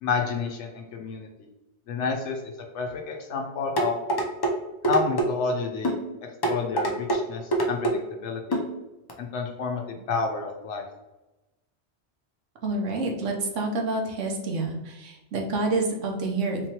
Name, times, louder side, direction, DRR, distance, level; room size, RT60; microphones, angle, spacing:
voice 1, 0.0-1.5 1.9-2.4 2.7-4.0 4.9-6.0 6.4-8.6 9.2-10.8, left 4 dB, 75° left, 2 dB, 0.9 m, -29 dB
sound 1, 3.8-4.5 4.8-5.3 5.8-6.0 6.4-7.2 7.5-8.0 8.5-8.7 9.1-9.2, right 2 dB, 35° left, 0.3 m, -24 dB
voice 2, 12.6-16.6, right 2 dB, 85° right, 1 dB, 1.1 m, -28 dB
4.0 x 3.0 x 2.8 m, 1.0 s
omnidirectional pair, 1.2 m